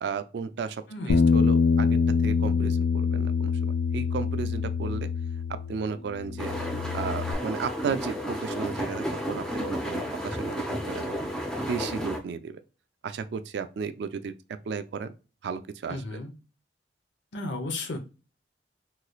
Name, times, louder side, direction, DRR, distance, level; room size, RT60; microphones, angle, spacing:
voice 1, 0.0-0.8 1.1-5.1 5.7-6.6 6.9-11.2 11.6-12.6 13.0-14.4 14.7-15.1 15.4-16.2, right 5 dB, 65° right, 0.3 m, -34 dB
voice 2, 0.9-1.5 15.9-16.3 17.3-18.0, left 2 dB, 85° left, 0.7 m, -34 dB
Bass guitar, 1.1-5.9 6.2-7.3, left 5 dB, 70° left, 0.4 m, -25 dB
sound 1, 6.4-12.2, equal, 5° left, 0.6 m, -32 dB
3.2 x 3.1 x 2.3 m
head